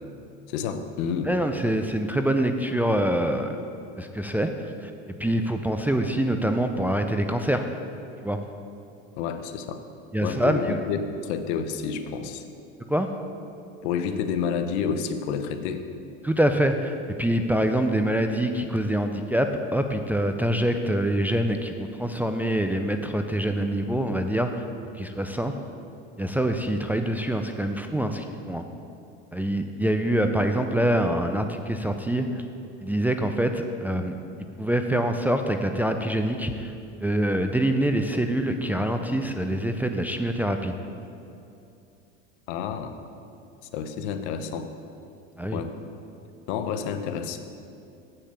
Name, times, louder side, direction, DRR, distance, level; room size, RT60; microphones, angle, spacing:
voice 1, 0.5-1.3 9.2-9.8 10.2-12.4 13.8-15.8 42.5-42.9 43.7-44.7 45.5-45.7 46.5-47.4, left 6 dB, 75° left, 9 dB, 0.8 m, -29 dB
voice 2, 1.3-3.5 4.0-4.5 4.8-4.9 5.2-7.7 8.2-8.4 10.1-10.8 12.9-13.1 16.2-24.6 25.0-25.6 26.2-28.6 29.3-32.4 32.8-34.1 34.6-36.7 37.0-40.7 45.4-45.6, right 1 dB, 5° right, 5 dB, 0.4 m, -25 dB
8.2 x 5.8 x 6.8 m, 2.7 s
supercardioid pair, 100°, 33 cm